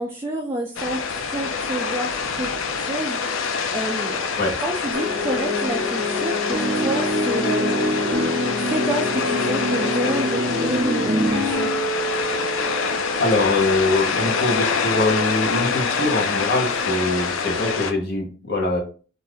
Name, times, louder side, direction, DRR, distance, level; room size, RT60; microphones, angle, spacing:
voice 1, 0.0-2.5 2.8-4.3 4.6-7.8 8.7-11.7, right 1 dB, 10° right, -1 dB, 0.4 m, -29 dB
sound 1, 0.8-17.9, left 5 dB, 75° left, 0.4 m, -26 dB
sound 2, 4.9-13.4, equal, 75° right, 0.6 m, -25 dB
voice 2, 12.8-18.8, left 2 dB, 55° left, 0 dB, 0.9 m, -23 dB
2.6 x 2.4 x 3.3 m, 0.38 s
head